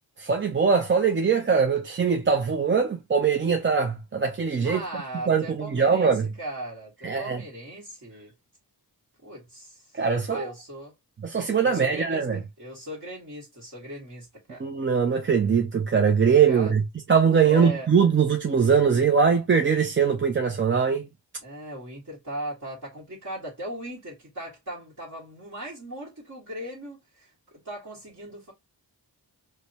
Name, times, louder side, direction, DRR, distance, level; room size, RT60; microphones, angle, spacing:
voice 1, 0.2-4.8 5.3-6.3 7.0-7.4 9.9-10.5 11.2-12.4 14.6-16.8 17.1-21.1, right 6 dB, 30° right, 0.4 m, -22 dB
voice 2, 4.6-8.3 9.2-10.0 10.3-10.9 11.6-14.7 16.5-16.7 17.4-17.9 21.4-28.5, right 1 dB, 45° right, 1.6 m, -38 dB
4.8 x 2.1 x 2.7 m
wide cardioid pair, 140°, 40 cm